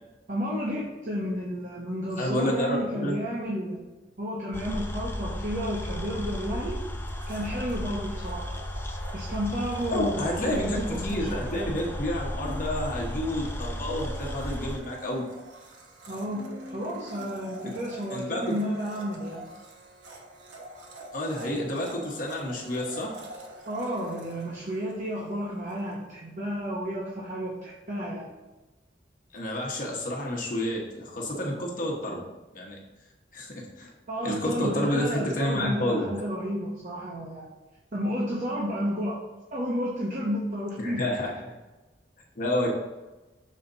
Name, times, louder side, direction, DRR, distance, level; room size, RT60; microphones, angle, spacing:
voice 1, 0.3-3.8 4.2-6.8 7.3-8.5 9.1-11.5 16.1-19.5 23.7-28.3 34.1-37.5 37.9-39.2 39.5-41.0, equal, 45° right, -4 dB, 1.1 m, -32 dB
voice 2, 2.2-3.2 9.9-15.2 18.1-18.5 21.1-23.2 29.3-32.2 32.5-32.8 33.3-33.9 34.2-36.1 40.8-41.6 42.4-42.7, left 1 dB, 45° left, -2 dB, 1.2 m, -29 dB
sound 1, 4.5-14.8, left 1 dB, 15° left, 0.5 m, -34 dB
Domestic sounds home sounds, 7.1-25.8, right 2 dB, 85° right, 1.1 m, -47 dB
Human voice, 12.3-13.2 13.8-15.4 16.2-17.5, left 2 dB, 65° right, 1.4 m, -46 dB
6.4 x 4.2 x 4.1 m, 1.1 s
head